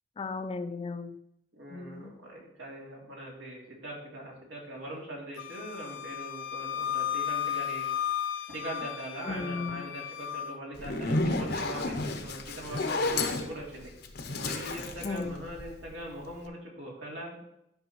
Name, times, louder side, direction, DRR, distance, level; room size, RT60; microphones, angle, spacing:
voice 1, 0.2-1.2 1.7-2.2 9.2-9.8 15.0-15.4, left 3 dB, 30° left, 10 dB, 0.4 m, -36 dB
voice 2, 1.5-7.9 8.5-13.9 14.4-17.4, right 1 dB, 80° right, -3 dB, 2.7 m, -41 dB
Wind instrument woodwind instrument, 5.4-10.6, left 10 dB, 85° left, 0.5 m, -34 dB
Zipper (clothing), 10.7-16.0, left 2 dB, 60° left, 0.8 m, -31 dB
10.5 x 6.0 x 3.0 m, 0.80 s
head